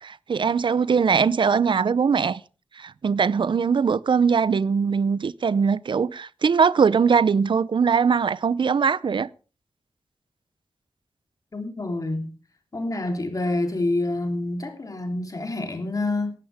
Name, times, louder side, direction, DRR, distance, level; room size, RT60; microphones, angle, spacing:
voice 1, 0.0-2.4 2.8-9.3, right 6 dB, 60° right, 0.6 m, -21 dB
voice 2, 11.5-12.3 12.7-16.3, left 2 dB, 40° left, 3.4 m, -27 dB
17.5 x 13.0 x 3.6 m
wide cardioid pair, 100°, 9 cm